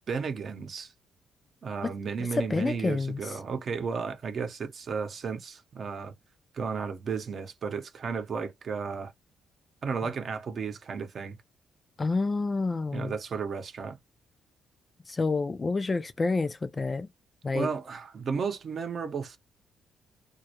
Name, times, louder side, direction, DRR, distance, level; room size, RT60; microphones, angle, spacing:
voice 1, 0.1-0.9 1.6-6.1 6.5-9.1 9.8-11.4 12.9-14.0 17.5-19.4, right 5 dB, 50° right, 0.7 m, -33 dB
voice 2, 2.4-3.2 12.0-13.1 15.1-17.1 17.4-17.7, left 3 dB, 30° left, 0.3 m, -28 dB
2.3 x 2.0 x 2.8 m
cardioid pair, 90°, 0 cm